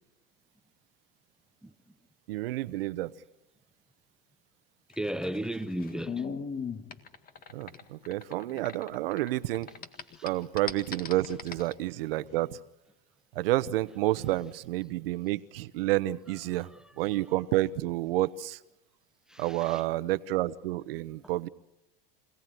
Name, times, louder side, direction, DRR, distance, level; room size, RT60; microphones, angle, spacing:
voice 1, 2.3-3.1 7.5-9.7 10.2-12.6 13.3-16.7 17.0-18.6 19.4-21.5, right 16 dB, 75° right, 1.1 m, -30 dB
sound 1, 4.9-9.3 9.5-11.7, left 6 dB, 30° left, 1.9 m, -38 dB
voice 2, 5.0-6.2 10.1-10.2 19.3-19.8, right 1 dB, ahead, 0.8 m, -34 dB
26.0 x 17.5 x 9.4 m
supercardioid pair, 115°, 29 cm